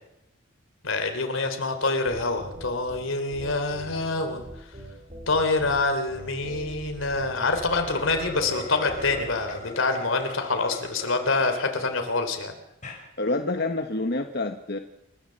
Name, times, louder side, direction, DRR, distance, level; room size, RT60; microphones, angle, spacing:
voice 1, 0.8-4.5 5.3-12.5, left 3 dB, 80° left, 6 dB, 3.2 m, -26 dB
sound 1, 2.0-9.7, equal, 35° right, 4.5 m, -42 dB
sound 2, 7.8-11.6 12.1-12.2 12.7-13.0, left 3 dB, 40° left, 5.6 m, -39 dB
voice 2, 13.2-14.8, left 2 dB, 55° left, 6 dB, 1.2 m, -27 dB
28.5 x 14.0 x 7.6 m, 0.88 s
head